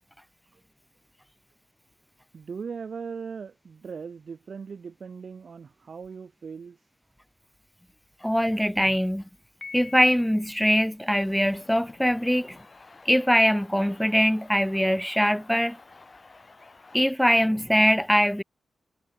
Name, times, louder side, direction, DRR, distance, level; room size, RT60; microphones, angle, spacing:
voice 1, 2.3-6.8, right 5 dB, 55° right, 1.2 m, -39 dB
voice 2, 8.2-9.2 9.7-12.6 13.1-15.8 16.9-18.4, equal, ahead, 0.8 m, -22 dB
Piano, 9.6-10.7, left 5 dB, 50° left, 4.8 m, -44 dB
sound 1, 11.2-17.1, left 3 dB, 35° left, 5.3 m, -52 dB
cardioid pair, 90°, 0 cm